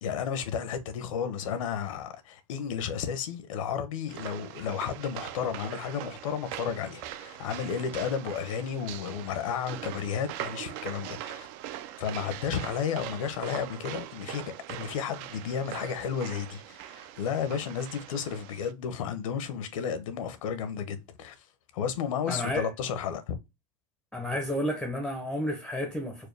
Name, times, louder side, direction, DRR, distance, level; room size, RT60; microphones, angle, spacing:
voice 1, 0.0-11.5 12.0-21.5 21.7-23.3, left 7 dB, 75° left, 0.9 m, -33 dB
sound 1, 4.1-18.7, right 13 dB, 45° right, 0.4 m, -41 dB
voice 2, 22.3-22.7 24.1-26.3, equal, 5° left, 0.6 m, -31 dB
4.7 x 2.2 x 3.2 m
supercardioid pair, 140°, 17 cm